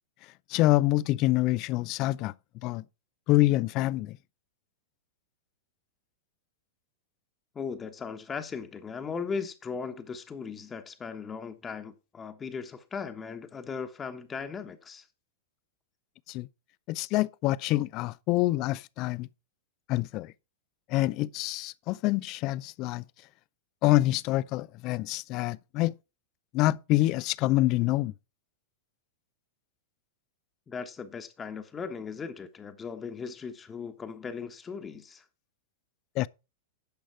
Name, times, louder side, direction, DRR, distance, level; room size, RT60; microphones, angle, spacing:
voice 1, 0.5-2.3 2.6-2.8 3.3-4.2 16.3-16.5 16.9-19.3 19.9-20.3 20.9-23.0 23.8-25.9 26.5-28.1 36.2-36.3, left 17 dB, 45° left, 0.4 m, -26 dB
voice 2, 7.5-15.1 30.7-35.2, left 5 dB, 20° left, 1.2 m, -38 dB
10.5 x 6.2 x 4.5 m
figure-of-eight pair, 100°, 0 cm